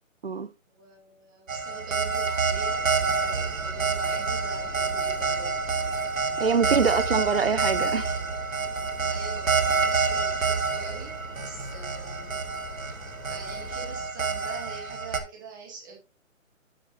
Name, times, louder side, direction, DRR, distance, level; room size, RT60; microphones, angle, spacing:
voice 1, 0.7-5.5 6.5-7.2 9.1-12.4 12.9-13.0 13.2-16.0, right 4 dB, 15° right, 2.2 m, -44 dB
sound 1, 1.5-15.2, right 4 dB, 75° right, 1.9 m, -28 dB
sound 2, 2.5-14.1, left 3 dB, 80° left, 1.7 m, -43 dB
voice 2, 6.4-8.2, right 5 dB, 45° right, 0.7 m, -25 dB
9.1 x 8.4 x 3.0 m
hypercardioid pair, 175°, 40 cm